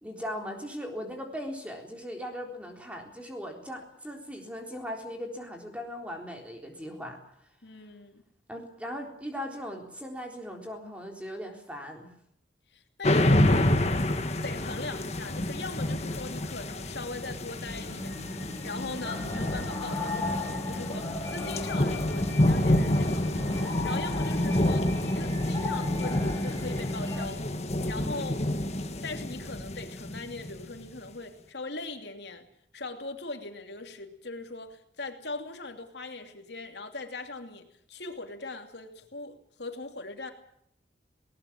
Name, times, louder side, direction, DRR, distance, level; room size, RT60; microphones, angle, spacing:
voice 1, 0.0-7.2 8.5-12.1 28.0-28.3, equal, 5° right, 2 dB, 3.8 m, -39 dB
voice 2, 7.6-8.2 12.7-13.8 14.4-27.4 27.9-28.4 29.0-32.4 32.7-40.3, left 3 dB, 70° left, 5 dB, 2.8 m, -40 dB
sound 1, 13.0-30.9, left 1 dB, 35° left, 1.6 m, -28 dB
sound 2, 17.6-27.3, left 2 dB, 20° left, 5.2 m, -36 dB
19.5 x 19.5 x 8.7 m, 0.70 s
head